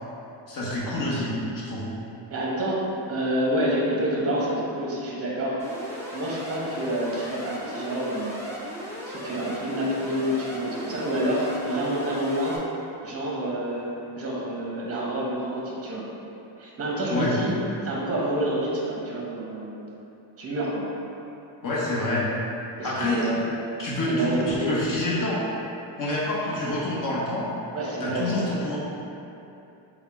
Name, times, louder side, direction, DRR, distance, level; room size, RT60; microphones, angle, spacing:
voice 1, 0.5-1.9 17.1-17.3 21.6-22.3 22.8-23.3 23.8-25.5 26.0-27.5 28.0-28.8, left 1 dB, 45° left, -6 dB, 1.0 m, -27 dB
voice 2, 2.3-2.8 3.1-5.6 5.9-8.3 9.1-12.6 13.0-13.9 14.2-16.0 16.6-17.6 17.8-19.9 20.4-20.9 22.8-23.5 24.1-25.0 27.7-28.6, right 1 dB, 30° right, -5 dB, 0.8 m, -28 dB
Alarm, 5.6-12.6, equal, 5° left, 0.4 m, -37 dB
4.1 x 2.3 x 4.2 m, 2.8 s
cardioid pair, 140°, 47 cm